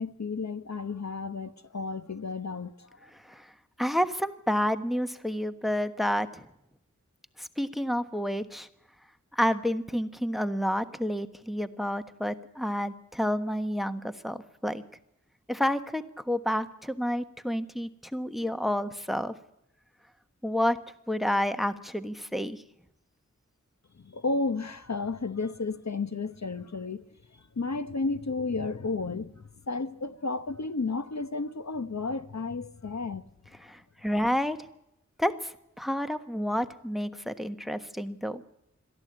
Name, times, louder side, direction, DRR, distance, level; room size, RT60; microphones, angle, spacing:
voice 1, 0.0-3.1 24.0-27.0 27.6-29.3 29.7-33.2, left 3 dB, 60° left, 1.0 m, -32 dB
voice 2, 3.8-6.4 7.4-8.7 9.3-14.8 15.5-19.3 20.4-20.8 21.1-22.6 33.6-34.6 35.2-38.4, equal, ahead, 1.3 m, -29 dB
22.0 x 14.5 x 8.7 m
wide cardioid pair, 50°, 31 cm